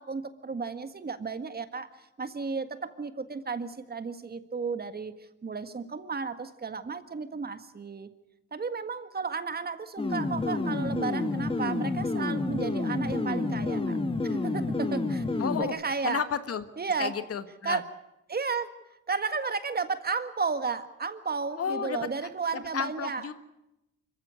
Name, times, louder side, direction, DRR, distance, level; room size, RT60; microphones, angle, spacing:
voice 1, 0.0-5.1 5.4-8.1 8.5-15.2 15.6-16.2 16.8-17.1 17.6-17.8 18.3-18.7 19.1-23.3, right 5 dB, 30° right, 10 dB, 1.7 m, -33 dB
sound 1, 10.0-15.6, left 3 dB, 20° left, 1.7 m, -29 dB
voice 2, 15.4-15.7 16.0-16.6 17.0-17.8 21.6-22.1 22.5-23.3, left 7 dB, 50° left, 11 dB, 1.6 m, -32 dB
25.0 x 15.0 x 9.7 m, 0.90 s
cardioid pair, 90°, 30 cm